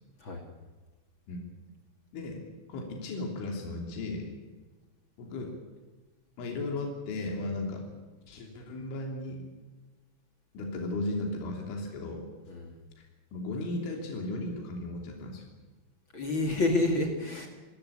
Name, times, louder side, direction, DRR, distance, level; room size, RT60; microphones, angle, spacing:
voice 1, 2.7-4.3 5.2-5.6 6.4-7.8 8.3-9.4 10.5-12.3 13.3-15.4, left 2 dB, 80° left, 1 dB, 5.6 m, -35 dB
voice 2, 12.5-12.8 16.1-17.5, left 2 dB, 40° left, 3 dB, 1.8 m, -29 dB
28.5 x 13.0 x 8.6 m, 1.3 s
omnidirectional pair, 5.4 m